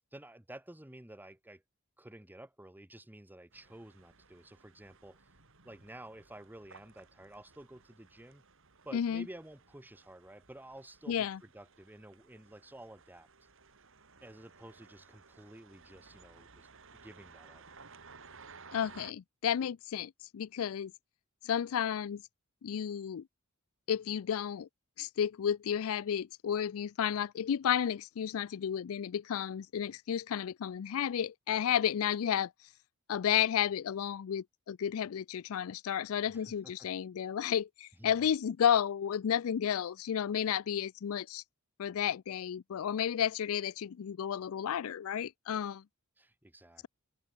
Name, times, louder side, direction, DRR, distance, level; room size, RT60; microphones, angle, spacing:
voice 1, 0.1-1.6 2.0-5.3 5.6-8.4 8.8-13.3 14.2-17.6 36.3-36.9 38.0-38.3 46.2-46.9, right 1 dB, 10° right, 1.2 m, -52 dB
sound 1, 3.5-19.1, right 5 dB, 65° right, 5.7 m, -58 dB
voice 2, 8.9-9.2 11.1-11.4 18.7-20.9 21.4-22.2 22.6-23.2 23.9-24.7 25.0-32.5 33.1-41.4 41.8-45.8, left 9 dB, 70° left, 0.4 m, -32 dB
open air
head